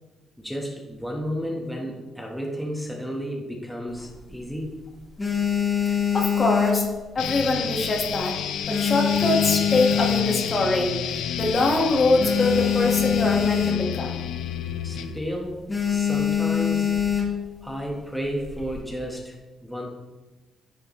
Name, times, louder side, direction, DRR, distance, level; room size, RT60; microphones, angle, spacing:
voice 1, 0.4-4.8 14.8-16.9 17.6-19.9, equal, ahead, -2 dB, 1.4 m, -32 dB
sound 1, 3.9-4.6 5.0-7.5 7.8-8.2 8.5-10.7 11.2-11.3 11.4-11.6 11.9-14.1 14.4-14.7 15.0-15.2 15.7-17.5 18.2-18.8, left 8 dB, 25° left, 1.9 m, -24 dB
voice 2, 5.9-6.9 7.2-8.4 8.7-14.2, left 2 dB, 40° left, 0 dB, 1.7 m, -24 dB
sound 2, 7.2-15.2, left 8 dB, 85° left, 0.5 m, -30 dB
10.5 x 6.6 x 3.2 m, 1.2 s
cardioid pair, 90°, 0 cm